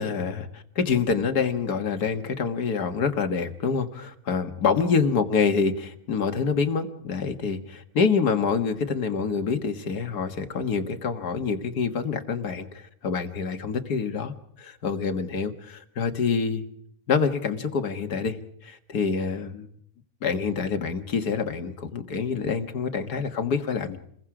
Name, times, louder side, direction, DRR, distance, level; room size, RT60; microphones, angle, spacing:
voice 1, 0.0-16.6 17.1-19.7 20.2-24.0, left 5 dB, 80° left, 7 dB, 2.1 m, -26 dB
29.0 x 21.5 x 4.9 m, 0.68 s
omnidirectional pair, 1.6 m